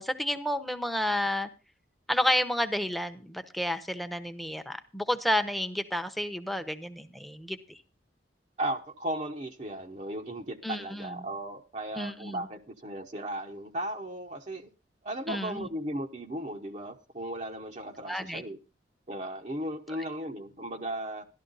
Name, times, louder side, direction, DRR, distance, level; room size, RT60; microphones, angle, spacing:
voice 1, 0.0-1.5 2.1-7.8 10.6-11.3 12.0-12.5 15.3-15.7 18.1-18.4, left 1 dB, ahead, 0.8 m, -31 dB
voice 2, 8.6-14.7 15.0-18.6 19.1-21.2, right 1 dB, 40° right, 0.8 m, -36 dB
12.5 x 12.5 x 3.9 m
head